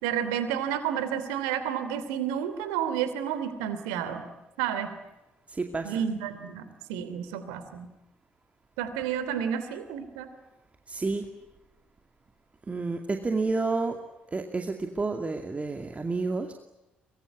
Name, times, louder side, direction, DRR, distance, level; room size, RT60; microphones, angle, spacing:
voice 1, 0.0-4.2 4.6-4.9 5.8-7.9 8.8-10.3, right 9 dB, 70° right, 11 dB, 3.0 m, -31 dB
voice 2, 5.5-5.9 10.9-11.3 12.7-14.0 14.3-16.5, right 3 dB, 25° right, 5 dB, 2.4 m, -30 dB
23.5 x 23.0 x 9.8 m, 0.97 s
figure-of-eight pair, 45°, 5 cm